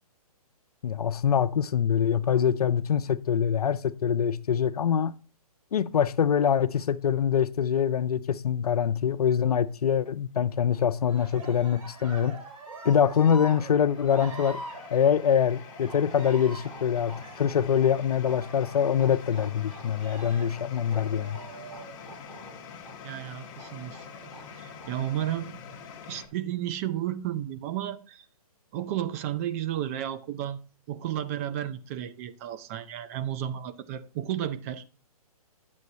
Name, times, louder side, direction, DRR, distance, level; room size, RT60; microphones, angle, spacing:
voice 1, 0.8-5.2 5.7-12.4 12.8-14.6 14.9-21.4, left 8 dB, 75° left, 0.6 m, -24 dB
Cheering, 11.0-22.7 23.9-24.8 25.5-26.1, right 2 dB, 65° right, 4.9 m, -45 dB
sound 1, 11.8-26.3, left 7 dB, 35° left, 1.0 m, -46 dB
sound 2, 13.3-24.9, right 3 dB, 85° right, 3.7 m, -52 dB
voice 2, 23.0-24.3 24.6-25.5 26.1-28.3 28.7-30.6 30.9-34.8, right 11 dB, 25° right, 0.4 m, -33 dB
9.5 x 7.0 x 2.7 m
hypercardioid pair, 145°, 19 cm